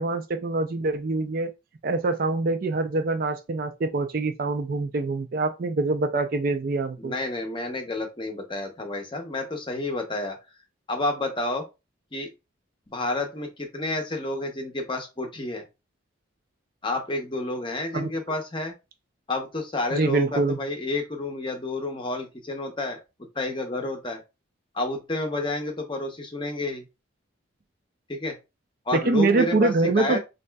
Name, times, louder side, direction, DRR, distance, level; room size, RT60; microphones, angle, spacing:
voice 1, 0.0-1.5 1.8-7.1 17.9-18.1 19.9-20.6 28.9-30.2, right 3 dB, 45° right, 0.4 m, -24 dB
voice 2, 7.0-10.4 10.9-11.6 12.1-12.3 12.9-15.7 16.8-18.7 19.3-23.0 23.3-24.2 24.7-26.9 28.1-28.4 28.9-30.2, left 2 dB, 25° left, 0.7 m, -30 dB
4.0 x 2.6 x 2.2 m
head